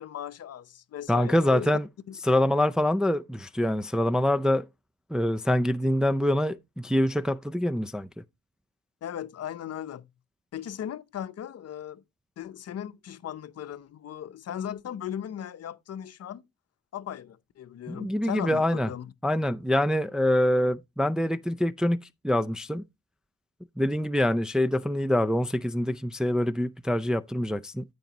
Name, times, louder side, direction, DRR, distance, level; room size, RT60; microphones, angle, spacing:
voice 1, 0.0-1.8 2.1-2.2 9.0-10.1 10.5-12.0 12.4-16.4 16.9-19.1, left 10 dB, 55° left, 0.8 m, -37 dB
voice 2, 1.1-1.9 2.2-4.7 5.1-8.1 17.9-18.9 19.2-22.8 23.8-27.8, left 1 dB, ahead, 0.4 m, -25 dB
13.0 x 5.2 x 2.9 m
cardioid pair, 90°, 30 cm